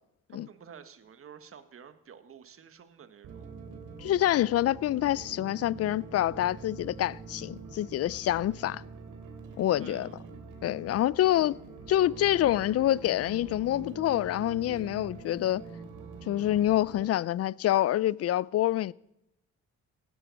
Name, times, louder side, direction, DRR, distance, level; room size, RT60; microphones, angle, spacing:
voice 1, 0.3-3.5 9.8-10.2, right 7 dB, 45° right, 1.4 m, -50 dB
sound 1, 3.2-17.1, right 4 dB, 75° right, 3.0 m, -45 dB
voice 2, 4.0-8.8 9.6-10.1 10.6-11.6 11.9-15.6 16.3-18.9, left 13 dB, 55° left, 0.4 m, -26 dB
17.0 x 10.0 x 6.4 m
cardioid pair, 90°, 30 cm